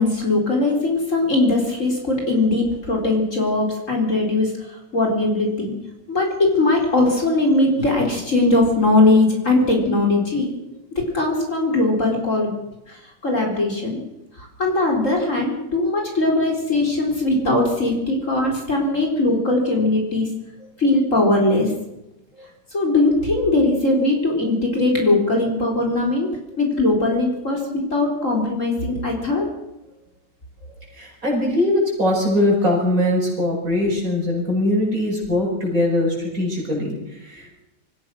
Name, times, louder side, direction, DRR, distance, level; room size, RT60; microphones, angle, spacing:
voice 1, 0.0-4.5 4.9-5.7 6.1-10.5 10.9-12.5 12.9-14.0 14.6-20.3 20.8-21.7 22.7-26.3 26.6-29.5, left 2 dB, 45° left, 1 dB, 4.4 m, -20 dB
voice 2, 30.7-37.6, left 1 dB, 50° right, -3 dB, 7.5 m, -21 dB
26.5 x 15.5 x 6.2 m, 0.92 s
omnidirectional pair, 1.9 m